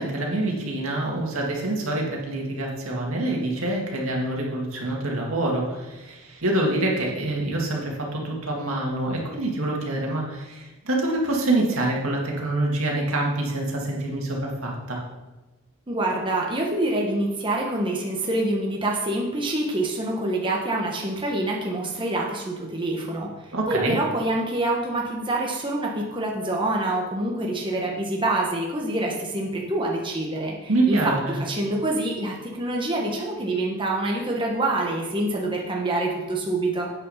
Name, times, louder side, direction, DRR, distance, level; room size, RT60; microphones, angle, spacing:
voice 1, 0.0-15.0 23.5-24.0 30.7-31.4, right 2 dB, 80° right, -1 dB, 2.1 m, -26 dB
voice 2, 15.9-23.3 23.7-36.9, right 2 dB, 25° right, -1 dB, 1.1 m, -26 dB
8.4 x 6.2 x 5.7 m, 1.1 s
head